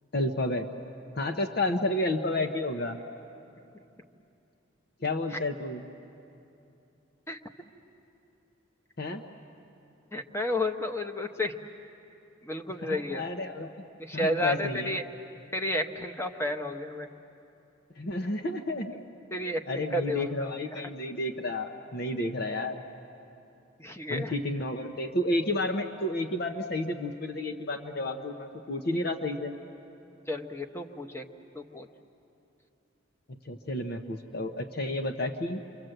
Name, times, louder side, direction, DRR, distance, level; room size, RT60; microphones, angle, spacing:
voice 1, 0.1-0.7 1.2-3.0 5.0-5.8 9.0-9.2 12.8-13.7 14.1-15.0 18.0-18.9 19.7-22.8 24.1-29.5 33.3-35.6, left 1 dB, 55° left, 6 dB, 0.9 m, -31 dB
voice 2, 10.1-11.6 12.4-13.2 14.0-15.0 15.5-17.1 19.3-20.8 23.8-24.3 30.3-31.3 31.5-31.9, left 1 dB, 15° left, 5 dB, 1.0 m, -32 dB
28.5 x 24.5 x 7.9 m, 2.8 s
head